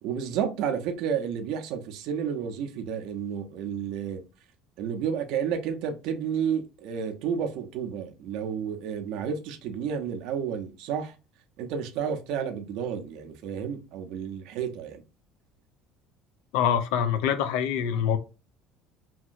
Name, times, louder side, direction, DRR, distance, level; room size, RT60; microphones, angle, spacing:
voice 1, 0.0-4.2 4.8-11.1 11.6-15.0, right 7 dB, 60° right, 0.5 m, -31 dB
voice 2, 16.5-18.2, left 8 dB, 75° left, 0.4 m, -25 dB
2.9 x 2.7 x 2.4 m
cardioid pair, 170°, 0 cm